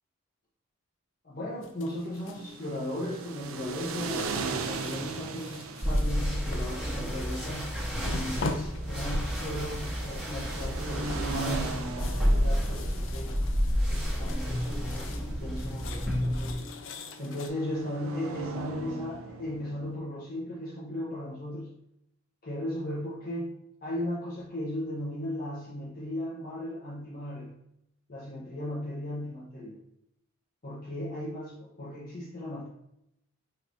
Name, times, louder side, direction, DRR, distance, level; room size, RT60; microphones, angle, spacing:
voice 1, 1.2-7.7 8.1-13.3 13.9-16.7 17.2-21.7 22.4-23.5 23.8-27.5 28.1-29.8 30.6-32.7, left 1 dB, 40° left, -5 dB, 0.8 m, -36 dB
sound 1, 1.6-2.5 3.0-3.4 4.0-7.6 8.0-9.4 9.9-10.4 10.7-15.3 15.5-17.5, left 3 dB, 65° left, 0.4 m, -43 dB
sound 2, 2.1-20.0, right 4 dB, 75° right, 0.4 m, -40 dB
sound 3, 5.8-16.5, equal, 5° right, 1.5 m, -30 dB
5.1 x 3.1 x 2.6 m, 0.80 s
head